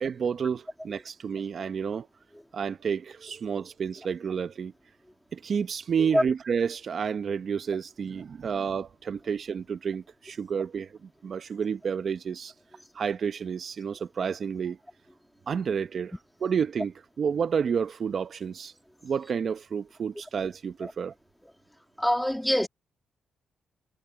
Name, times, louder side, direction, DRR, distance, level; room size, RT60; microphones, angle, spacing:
voice 1, 0.0-2.1 2.5-4.7 5.3-12.5 12.9-14.8 15.5-18.7 19.0-21.1, right 6 dB, 55° right, 0.7 m, -30 dB
voice 2, 22.0-22.7, equal, 5° left, 2.0 m, -24 dB
cardioid pair, 85°, 0 cm